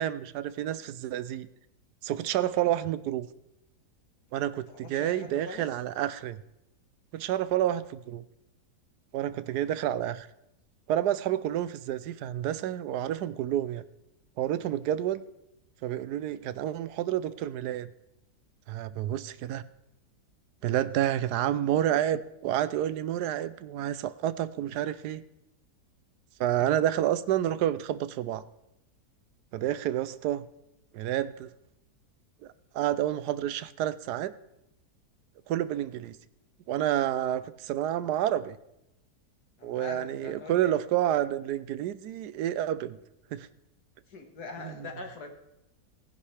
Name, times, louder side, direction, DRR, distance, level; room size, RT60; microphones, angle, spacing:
voice 1, 0.0-1.5 2.0-3.3 4.3-6.4 7.1-8.2 9.1-10.3 10.9-13.8 14.4-15.2 15.8-17.9 18.7-19.6 20.6-25.2 26.4-28.4 29.5-30.4 30.9-31.5 32.7-34.3 35.5-36.2 36.7-38.6 39.6-43.0 43.3-43.5 44.6-44.7, right 12 dB, 80° right, 15 dB, 1.1 m, -29 dB
voice 2, 4.7-5.8 39.6-40.8 44.1-45.3, left 3 dB, 70° left, 3 dB, 2.2 m, -42 dB
18.5 x 10.5 x 3.3 m, 0.85 s
omnidirectional pair, 1.8 m